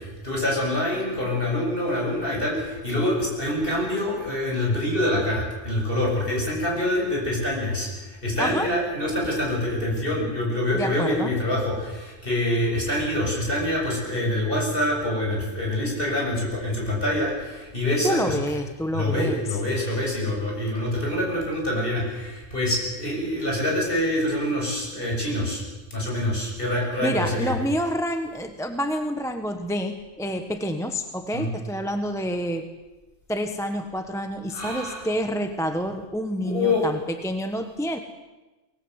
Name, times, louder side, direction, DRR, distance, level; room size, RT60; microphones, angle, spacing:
voice 1, 0.0-18.4 18.9-25.6 25.9-27.5 31.3-31.5 34.5-35.0 36.4-36.9, left 1 dB, 45° left, -2 dB, 7.5 m, -25 dB
voice 2, 8.4-8.7 10.7-11.3 18.0-19.6 27.0-32.7 33.3-38.0, equal, ahead, 7 dB, 1.1 m, -28 dB
23.5 x 20.0 x 8.1 m, 1.1 s
omnidirectional pair, 1.3 m